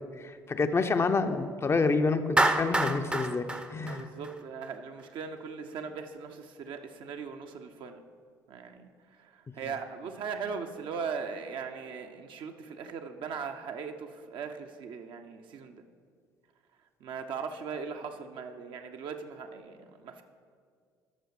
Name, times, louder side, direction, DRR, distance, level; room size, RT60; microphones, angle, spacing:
voice 1, 0.0-4.1, left 4 dB, 25° left, 8 dB, 0.6 m, -28 dB
Clapping, 2.4-4.7, right 2 dB, 10° right, 0.7 m, -27 dB
voice 2, 3.8-8.0 8.5-15.8 17.0-20.2, right 6 dB, 55° right, 5 dB, 0.8 m, -39 dB
12.0 x 6.3 x 4.8 m, 2.1 s
hypercardioid pair, 55°, 10 cm